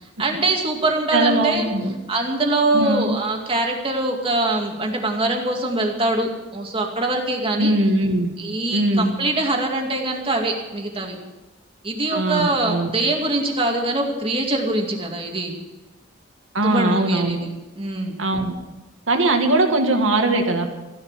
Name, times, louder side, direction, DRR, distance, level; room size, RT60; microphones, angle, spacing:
voice 1, 0.2-1.7 2.1-7.7 8.4-11.2 11.8-15.5 16.6-17.4 17.8-18.2, right 2 dB, 30° right, 2 dB, 2.4 m, -23 dB
voice 2, 1.1-1.9 2.7-3.2 7.6-8.3 8.7-9.1 12.1-12.9 16.5-17.4 18.2-18.5 19.1-20.7, right 2 dB, 80° right, 4 dB, 2.1 m, -20 dB
15.5 x 11.0 x 7.5 m, 1.1 s
head